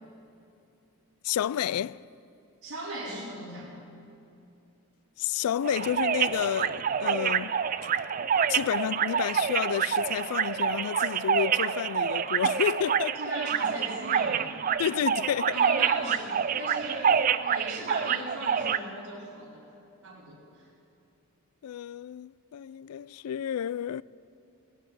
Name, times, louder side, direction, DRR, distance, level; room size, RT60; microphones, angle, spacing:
voice 1, 1.2-2.0 5.2-7.6 8.5-13.2 14.8-15.6 21.6-24.0, left 9 dB, 85° left, 0.3 m, -30 dB
voice 2, 2.6-3.7 13.2-14.5 15.5-19.6 20.0-20.7, right 1 dB, 80° right, 4.6 m, -38 dB
sound 1, 5.6-18.8, right 7 dB, 35° right, 0.3 m, -27 dB
18.5 x 8.8 x 8.2 m
head